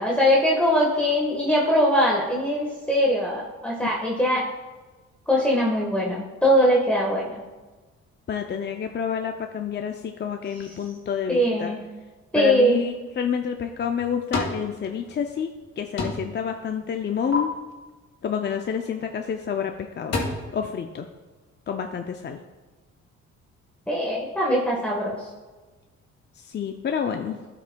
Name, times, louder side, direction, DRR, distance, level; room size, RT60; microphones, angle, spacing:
voice 1, 0.0-4.5 5.3-7.4 11.3-11.8 12.3-12.8 23.9-25.1, equal, 5° left, -4 dB, 1.3 m, -21 dB
voice 2, 8.3-11.7 12.3-15.5 15.8-17.5 18.2-20.2 20.5-21.1 21.7-22.4 26.4-27.4, left 7 dB, 35° left, 4 dB, 0.5 m, -28 dB
sound 1, 13.6-14.6 15.0-15.7 16.0-16.4 16.8-17.4 19.2-19.4 19.8-20.2, left 3 dB, 55° left, 2.2 m, -30 dB
12.0 x 6.0 x 2.3 m, 1.3 s
cardioid pair, 90°, 30 cm